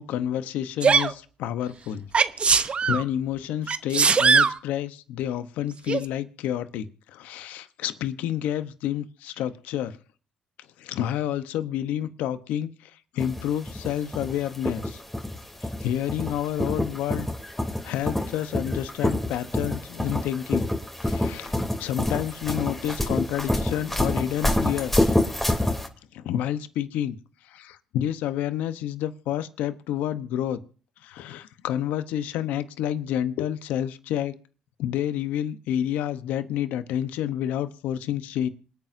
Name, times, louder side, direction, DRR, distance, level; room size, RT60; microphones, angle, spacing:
voice 1, 0.0-2.1 2.4-10.0 10.8-15.0 15.8-17.3 17.8-20.7 21.0-25.1 26.1-27.2 27.4-30.6 31.0-34.3 34.8-38.5, left 11 dB, 85° left, 12 dB, 0.9 m, -29 dB
Sneeze, 0.8-1.1 2.1-3.0 3.7-4.6 5.9-6.0, right 5 dB, 45° right, 0.9 m, -20 dB
sound 1, 13.2-25.9, left 1 dB, 10° left, 3.1 m, -27 dB
27.0 x 9.2 x 2.7 m, 0.40 s
supercardioid pair, 60°, 3 cm